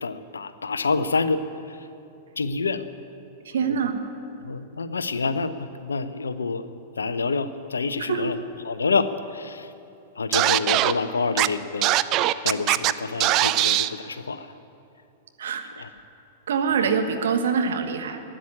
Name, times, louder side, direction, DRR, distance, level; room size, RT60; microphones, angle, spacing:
voice 1, 0.0-1.8 2.4-2.9 3.7-3.8 4.4-6.7 7.0-8.4 8.6-9.7 10.2-12.0 12.4-14.5 15.8-15.9, left 4 dB, 80° left, 12 dB, 0.7 m, -27 dB
voice 2, 3.4-4.0 8.1-8.3 15.4-15.7 16.5-18.2, right 6 dB, 70° right, 6 dB, 1.3 m, -24 dB
Scratching (performance technique), 10.3-10.9 11.4-11.5 11.8-12.9 13.2-13.9, right 15 dB, 40° right, 0.5 m, -20 dB
13.0 x 10.0 x 9.8 m, 2.7 s
figure-of-eight pair, 100°, 0 cm